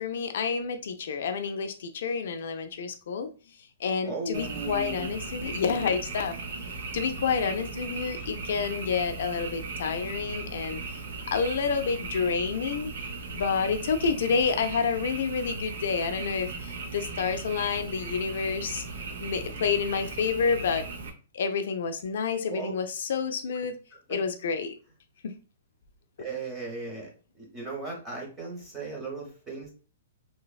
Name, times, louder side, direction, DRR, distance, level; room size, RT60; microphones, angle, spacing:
voice 1, 0.0-3.3 3.8-6.3 6.9-11.0 11.3-12.9 13.3-18.8 19.2-20.9 21.3-23.8 24.1-24.7 25.2-25.3, left 5 dB, 65° left, 8 dB, 0.3 m, -29 dB
voice 2, 4.0-5.1 22.5-22.7 24.1-24.2 26.2-27.1 27.3-29.7, right 3 dB, 15° right, -2 dB, 0.8 m, -36 dB
Frog, 4.3-21.1, right 3 dB, 65° right, 0.6 m, -37 dB
3.2 x 2.0 x 2.3 m, 0.36 s
hypercardioid pair, 170°, 0 cm